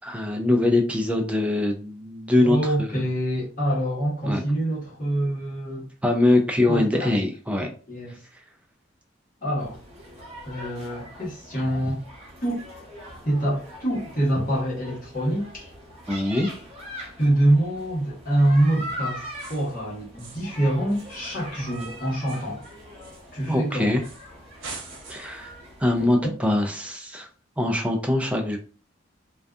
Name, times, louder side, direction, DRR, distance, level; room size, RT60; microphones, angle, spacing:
voice 1, 0.0-2.9 4.2-4.4 6.0-7.7 16.1-16.5 23.5-24.0 25.1-25.5 25.8-27.3 27.6-28.6, left 2 dB, 5° right, 0.3 m, -23 dB
voice 2, 2.4-5.9 6.7-7.1 7.9-8.2 9.4-9.8 10.4-12.0 12.4-12.6 13.2-15.7 17.2-22.7 23.3-24.0 26.0-26.1, right 1 dB, 45° left, 1.1 m, -25 dB
sound 1, 9.6-26.1, equal, 30° right, 0.7 m, -42 dB
sound 2, 19.3-19.8 20.2-20.6 20.9-23.6 24.0-24.3 24.6-25.5, right 4 dB, 85° right, 0.8 m, -44 dB
2.6 x 2.3 x 2.3 m
head